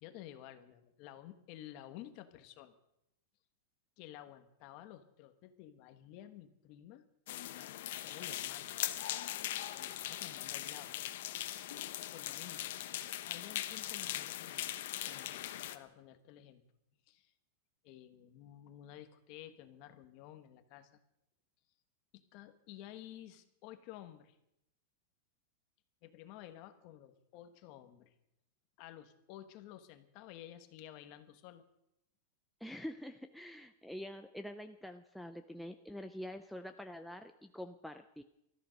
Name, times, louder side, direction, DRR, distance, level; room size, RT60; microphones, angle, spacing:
voice 1, 0.0-2.7 4.0-7.0 8.0-8.8 9.7-11.0 12.1-12.7 13.3-14.8 15.1-16.6 17.1-17.3 17.8-21.0 22.1-24.4 26.0-28.1 28.8-31.6, left 12 dB, 40° left, 9 dB, 1.4 m, -52 dB
sound 1, 7.3-15.8, left 13 dB, 60° left, 1.0 m, -40 dB
voice 2, 32.6-38.2, equal, ahead, 5 dB, 0.5 m, -46 dB
19.0 x 13.5 x 5.3 m, 0.81 s
supercardioid pair, 170°, 0 cm